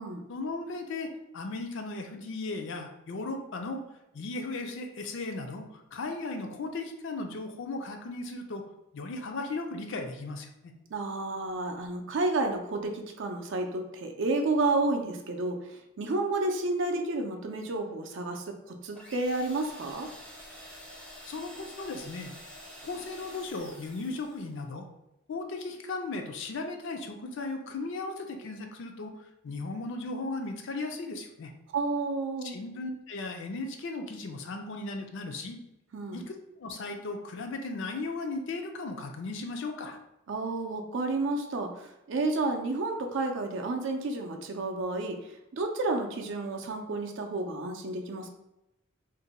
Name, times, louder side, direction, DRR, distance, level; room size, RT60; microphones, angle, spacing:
voice 1, 0.3-3.8 4.1-8.6 8.9-10.7 21.2-22.3 22.8-24.9 25.3-31.5 32.4-35.6 36.1-40.0, left 3 dB, 60° left, 4 dB, 0.4 m, -36 dB
voice 2, 10.9-20.1 31.7-32.6 35.9-36.2 40.3-48.3, right 2 dB, 60° right, 4 dB, 0.4 m, -31 dB
sound 1, 18.9-24.6, equal, 5° left, 0.5 m, -48 dB
2.6 x 2.1 x 4.0 m, 0.90 s
head